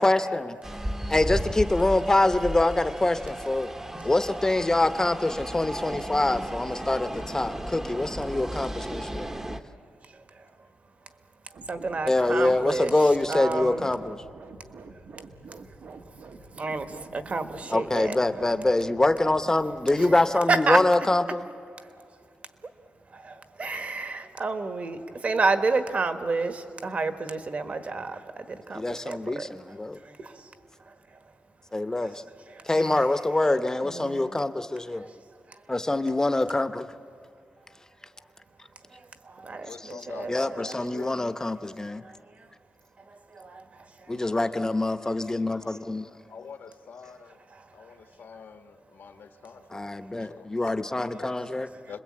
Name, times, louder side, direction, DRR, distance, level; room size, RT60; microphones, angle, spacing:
voice 1, 0.0-0.5 1.1-3.7 4.0-9.3 12.1-14.2 17.7-21.5 28.7-30.0 31.7-32.2 32.6-35.1 35.7-36.9 40.3-42.0 44.1-46.1 49.7-51.7, left 2 dB, 15° left, 10 dB, 0.8 m, -25 dB
sound 1, 0.6-9.6, right 1 dB, 15° right, 0.9 m, -35 dB
voice 2, 5.9-6.5 8.2-8.3 8.8-8.9 9.2-9.4 10.0-10.5 11.4-13.9 15.8-16.2 16.5-18.4 20.0-20.2 20.5-20.8 21.7-22.0 23.1-29.5 29.9-30.5 30.8-31.3 32.5-32.9 33.8-34.4 35.0-35.2 35.5-35.6 38.9-40.8 42.0-42.5 43.0-44.2 47.5-48.0, right 3 dB, 40° right, 8 dB, 1.4 m, -31 dB
sound 2, 11.5-20.4, right 4 dB, 75° right, 1.4 m, -46 dB
voice 3, 39.6-41.2 44.3-44.8 45.6-45.7 46.3-47.4 47.7-50.5 51.2-51.3 51.9-52.0, left 6 dB, 75° left, 7 dB, 1.3 m, -45 dB
29.5 x 21.0 x 8.7 m, 2.3 s
wide cardioid pair, 130°, 4 cm